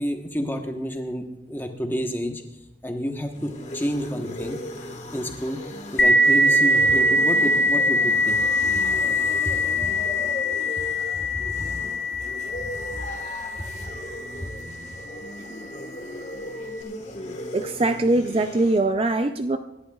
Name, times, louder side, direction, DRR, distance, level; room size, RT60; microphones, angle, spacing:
voice 1, 0.0-2.4 2.8-4.6 5.1-5.6 5.9-8.4 8.7-8.8 9.8-10.0 11.1-11.7 12.6-13.0 13.8-13.9 14.3-14.5, equal, 10° left, 4 dB, 1.1 m, -30 dB
sound 1, 3.2-18.8, left 1 dB, 40° left, 1.5 m, -37 dB
sound 2, 6.0-15.2, equal, 75° left, 1.0 m, -23 dB
voice 2, 17.5-19.6, right 2 dB, 30° right, 8 dB, 0.4 m, -22 dB
25.5 x 11.0 x 2.4 m, 0.90 s
head